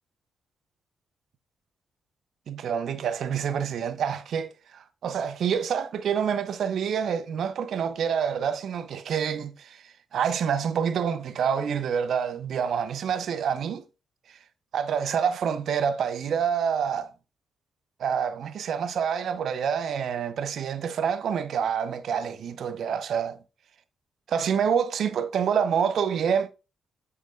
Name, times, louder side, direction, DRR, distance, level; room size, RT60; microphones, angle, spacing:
voice 1, 2.5-13.8 14.7-17.1 18.0-23.4 24.3-26.5, right 7 dB, 65° right, 0.8 m, -27 dB
8.3 x 6.8 x 2.5 m
hypercardioid pair, 40°, 0 cm